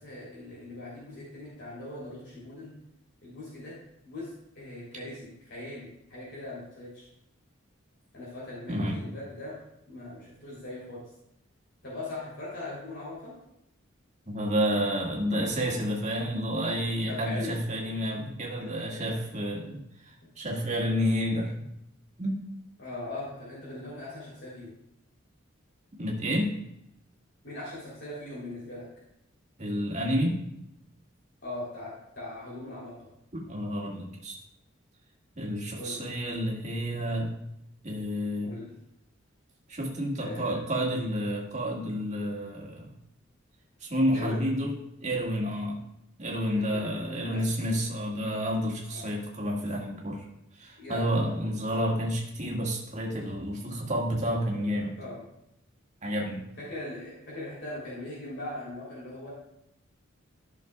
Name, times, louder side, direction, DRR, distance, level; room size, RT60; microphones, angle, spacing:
voice 1, 0.0-2.7 3.2-3.7 4.0-7.1 8.1-9.6 9.9-11.0 11.8-13.3 17.1-17.8 18.6-19.2 20.2-20.3 22.8-24.7 27.4-28.8 31.4-33.1 35.7-36.0 38.4-38.7 40.2-40.6 44.1-44.5 46.6-47.4 48.9-49.1 50.8-51.5 55.0-55.2 56.6-59.3, left 2 dB, 55° left, -7 dB, 3.3 m, -40 dB
voice 2, 14.3-21.7 22.2-22.4 26.0-26.6 29.6-30.4 33.3-34.3 35.4-37.3 37.8-38.5 39.7-42.9 43.8-44.7 45.0-45.8 46.2-50.3 50.6-55.0 56.0-56.4, equal, 35° right, -2 dB, 1.9 m, -30 dB
13.5 x 6.5 x 2.3 m, 0.80 s
head